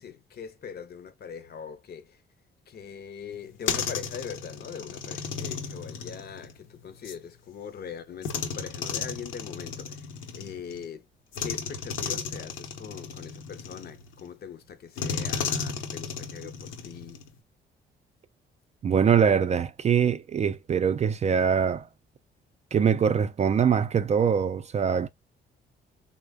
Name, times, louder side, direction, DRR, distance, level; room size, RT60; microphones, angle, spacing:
voice 1, 0.0-2.2 2.7-10.1 10.3-11.0 11.4-17.2, left 7 dB, 50° left, 0.6 m, -41 dB
sound 1, 3.3-7.2 8.2-10.8 11.3-14.3 15.0-17.4, left 6 dB, 85° left, 0.8 m, -34 dB
voice 2, 18.8-21.9 22.7-25.1, right 7 dB, 35° right, 0.4 m, -23 dB
3.3 x 2.1 x 3.4 m
cardioid pair, 90°, 20 cm